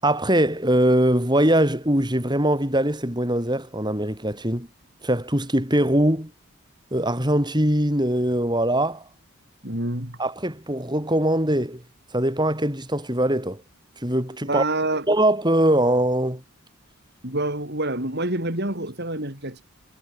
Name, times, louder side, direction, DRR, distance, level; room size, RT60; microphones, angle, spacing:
voice 1, 0.0-4.7 5.0-6.3 6.9-9.0 10.2-11.8 12.1-13.6 14.0-14.6 15.1-16.4, right 1 dB, 20° right, 7.0 m, -22 dB
voice 2, 9.6-10.2 14.5-15.1 17.2-19.6, right 2 dB, 50° right, 6.2 m, -27 dB
head